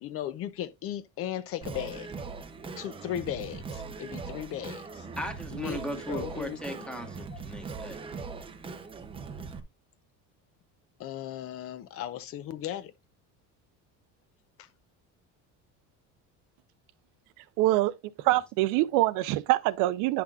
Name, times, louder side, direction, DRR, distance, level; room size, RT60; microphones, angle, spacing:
voice 1, 0.0-2.1 2.8-5.0 5.5-5.8 6.1-6.6 7.3-7.4 11.0-12.9, left 11 dB, 45° left, 0.6 m, -36 dB
Singing, 1.6-9.6, right 4 dB, 15° right, 0.7 m, -40 dB
voice 2, 5.2-8.0, equal, 5° left, 1.1 m, -37 dB
voice 3, 17.6-20.2, right 17 dB, 70° right, 0.6 m, -25 dB
10.0 x 5.9 x 2.4 m
cardioid pair, 175°, 34 cm